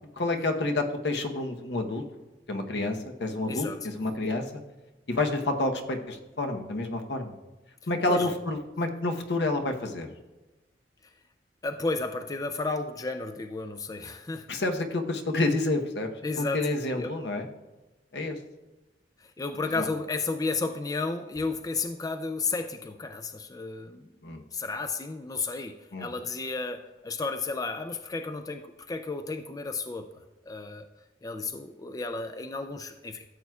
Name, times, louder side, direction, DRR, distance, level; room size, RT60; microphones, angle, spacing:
voice 1, 0.2-2.0 2.5-4.6 5.1-7.3 7.9-10.1 14.5-16.1 16.4-17.5 18.1-18.4 19.8-19.9 24.2-24.4 25.9-26.1, left 2 dB, 75° left, 4 dB, 0.9 m, -29 dB
voice 2, 3.5-3.8 8.1-8.3 11.6-14.5 16.2-16.6 17.0-17.1 19.4-24.1 24.5-28.6 28.9-30.1 30.5-30.9 31.2-33.2, left 3 dB, 20° left, 7 dB, 0.3 m, -32 dB
13.5 x 7.5 x 2.3 m, 1.1 s
head